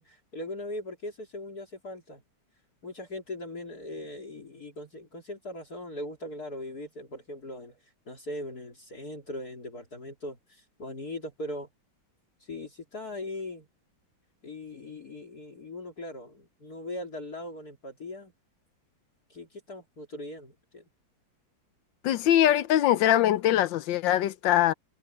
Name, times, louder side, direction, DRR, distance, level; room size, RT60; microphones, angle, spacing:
voice 1, 0.0-2.2 2.8-7.8 8.1-11.7 12.4-13.7 14.4-18.3 19.3-20.8, left 1 dB, 50° left, 3.8 m, -40 dB
voice 2, 22.0-24.7, left 12 dB, 75° left, 1.3 m, -22 dB
omnidirectional pair, 2.1 m